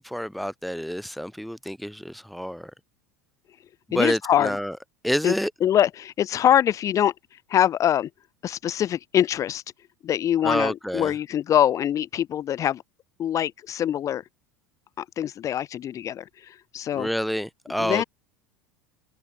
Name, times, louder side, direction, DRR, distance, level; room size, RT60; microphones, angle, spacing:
voice 1, 0.0-2.7 3.9-4.7 5.0-5.5 10.4-11.1 16.9-18.0, equal, ahead, 5.5 m, -28 dB
voice 2, 3.9-4.6 5.2-5.3 5.6-7.1 7.5-8.1 8.4-9.6 10.0-12.8 13.2-14.2 15.0-17.1 17.8-18.0, left 10 dB, 40° left, 6.6 m, -23 dB
hypercardioid pair, 80°, 8 cm